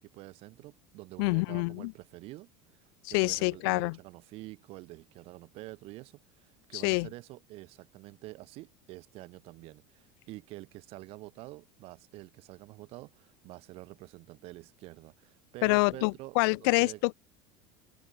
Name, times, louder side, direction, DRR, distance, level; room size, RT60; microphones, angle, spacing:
voice 1, 0.0-17.0, right 20 dB, 50° right, 4.5 m, -47 dB
voice 2, 1.2-1.9 3.0-4.0 6.7-7.1 15.6-17.1, left 32 dB, 70° left, 0.4 m, -27 dB
cardioid pair, 150°, 13 cm